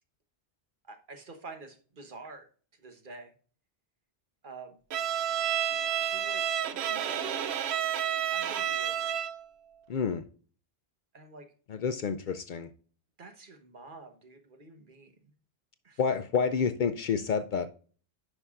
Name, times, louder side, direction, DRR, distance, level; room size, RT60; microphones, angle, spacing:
voice 1, 0.9-2.5 2.8-3.3 4.4-4.8 5.5-7.8 8.3-9.2 11.1-11.5 13.2-15.3 15.8-16.0, right 3 dB, 55° right, 1.3 m, -48 dB
Bowed string instrument, 4.9-9.5, right 10 dB, 90° right, 0.9 m, -30 dB
voice 2, 9.9-10.2 11.7-12.7 16.0-17.7, left 6 dB, 60° left, 0.6 m, -29 dB
9.9 x 5.4 x 2.4 m
omnidirectional pair, 1.0 m